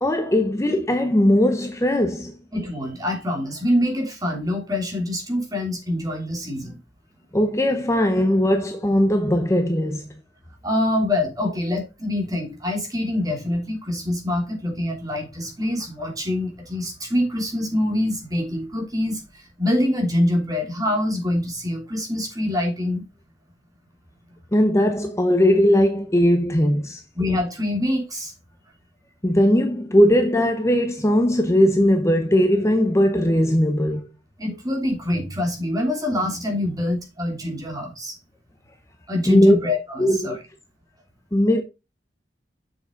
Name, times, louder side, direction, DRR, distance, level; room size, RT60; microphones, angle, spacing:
voice 1, 0.0-2.4 7.3-10.1 24.5-27.0 29.2-34.1 39.3-39.6 40.0-40.4 41.3-41.6, equal, 15° left, 0.8 m, -19 dB
voice 2, 2.5-6.8 10.6-23.0 27.1-28.3 34.4-38.1 39.1-40.4, left 1 dB, 20° right, 2.9 m, -25 dB
7.4 x 6.5 x 3.7 m
head